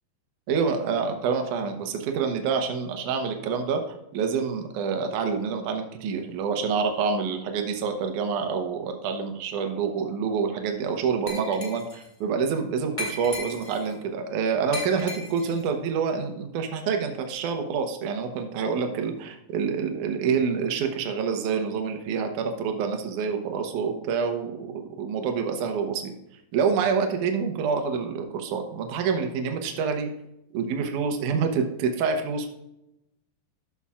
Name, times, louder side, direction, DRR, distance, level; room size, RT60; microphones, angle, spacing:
voice 1, 0.5-26.1 26.5-30.1 30.5-32.5, right 6 dB, 70° right, 4 dB, 2.4 m, -27 dB
Glass, 11.3-12.1 13.0-13.9 14.7-15.6, left 1 dB, 10° left, 1.7 m, -36 dB
12.5 x 7.1 x 2.4 m, 0.85 s
omnidirectional pair, 4.1 m